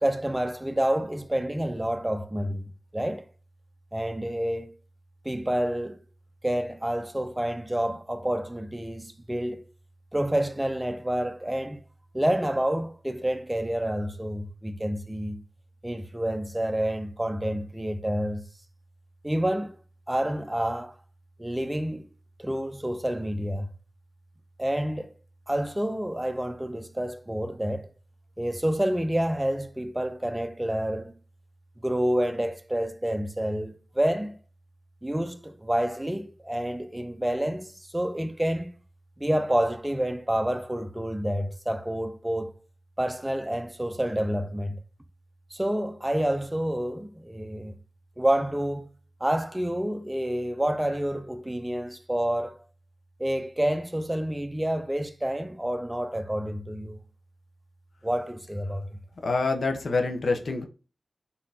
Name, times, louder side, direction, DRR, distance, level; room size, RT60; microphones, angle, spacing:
voice 1, 0.0-2.6 2.9-3.3 3.9-4.7 5.2-6.0 6.4-9.7 10.1-11.8 12.1-15.4 15.8-18.5 19.2-19.8 20.1-20.9 21.4-22.1 22.4-23.7 24.6-25.1 25.5-27.9 28.4-31.1 31.8-34.4 35.0-38.7 39.2-42.6 43.0-44.8 45.5-47.7 48.2-48.9 49.2-52.6 53.2-57.0 58.0-59.0, right 1 dB, 10° right, 0.5 m, -28 dB
voice 2, 59.2-60.6, left 3 dB, 70° left, 0.7 m, -26 dB
4.1 x 3.7 x 2.7 m
wide cardioid pair, 105°, 0 cm